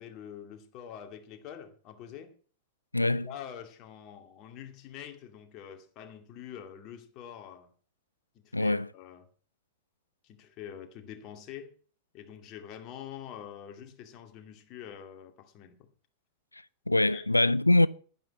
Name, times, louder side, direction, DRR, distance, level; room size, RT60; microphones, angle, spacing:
voice 1, 0.0-2.3 3.0-7.7 8.4-9.2 10.2-11.7 12.1-15.9 17.1-17.3, left 9 dB, 40° left, 2.3 m, -45 dB
voice 2, 2.9-3.3 8.5-8.9 16.9-17.9, left 2 dB, 85° left, 0.5 m, -23 dB
11.0 x 10.5 x 6.2 m
figure-of-eight pair, 90°, 0 cm